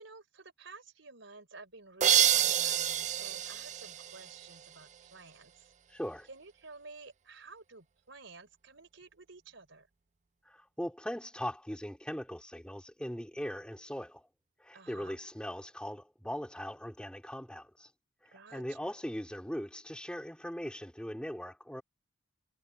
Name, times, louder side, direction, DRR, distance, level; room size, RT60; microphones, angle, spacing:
voice 1, 0.0-5.7 6.3-9.9 14.7-15.2 18.3-18.9, right 3 dB, 70° right, 4.3 m, -52 dB
sound 1, 2.0-4.7, right 10 dB, 40° right, 0.5 m, -28 dB
voice 2, 5.9-6.3 10.4-14.3 14.6-17.9 18.2-21.8, equal, 5° left, 3.3 m, -40 dB
head